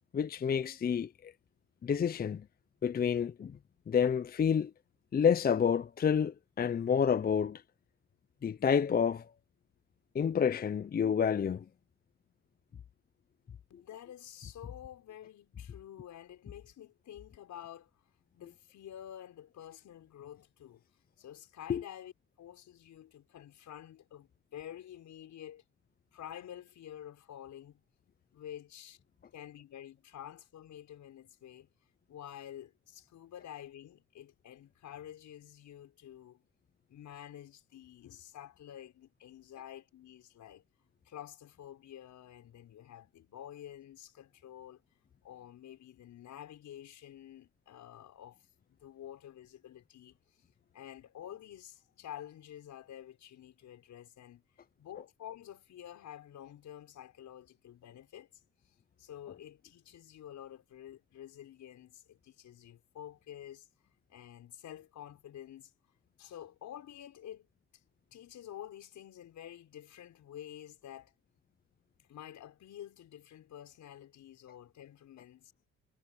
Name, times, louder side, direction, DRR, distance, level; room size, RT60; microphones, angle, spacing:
voice 1, 0.1-1.3 1.8-2.4 2.8-3.6 3.9-4.7 5.1-7.6 8.4-9.3 10.1-11.6 21.7-21.8, left 7 dB, 30° left, 0.5 m, -29 dB
voice 2, 13.7-18.0 18.3-20.8 21.2-22.1 22.4-25.6 26.1-27.8 28.3-29.0 29.3-31.7 32.1-36.4 36.9-40.6 41.0-44.8 45.2-48.4 48.7-50.2 50.7-54.4 54.8-58.3 59.0-63.7 64.1-65.7 66.2-67.5 68.1-71.1 72.1-75.5, left 11 dB, 75° left, 6.4 m, -49 dB
cardioid pair, 90°, 30 cm